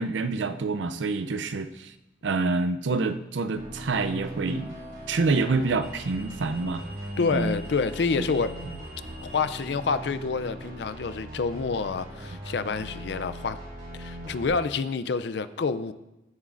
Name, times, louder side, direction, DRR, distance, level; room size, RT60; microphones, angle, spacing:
voice 1, 0.0-1.9 2.2-4.7 5.1-6.8 7.3-7.5 8.2-8.3 8.7-8.8, right 3 dB, 85° right, 12 dB, 0.5 m, -27 dB
sound 1, 1.2-1.6 4.5-9.6, equal, 15° right, 3.1 m, -48 dB
sound 2, 3.6-14.5, equal, 55° right, 3.5 m, -40 dB
voice 2, 7.2-8.5 9.2-13.6 13.9-15.9, left 4 dB, 70° left, 13 dB, 0.4 m, -28 dB
15.0 x 7.2 x 2.5 m, 0.95 s
head